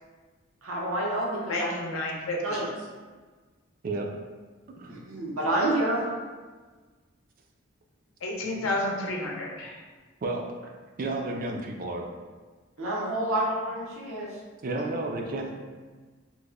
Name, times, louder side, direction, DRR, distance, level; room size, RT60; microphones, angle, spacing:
voice 1, 0.6-1.7 2.4-2.6 4.9-6.2 12.8-14.4 14.7-14.8, right 1 dB, 85° right, -4 dB, 0.7 m, -28 dB
voice 2, 1.5-2.7 8.2-9.8, left 1 dB, 85° left, -1 dB, 0.6 m, -31 dB
voice 3, 4.7-5.1 8.6-8.7 10.2-10.7 11.0-12.1 14.6-15.5, right 2 dB, 40° right, 2 dB, 0.3 m, -32 dB
2.9 x 2.1 x 3.6 m, 1.4 s
head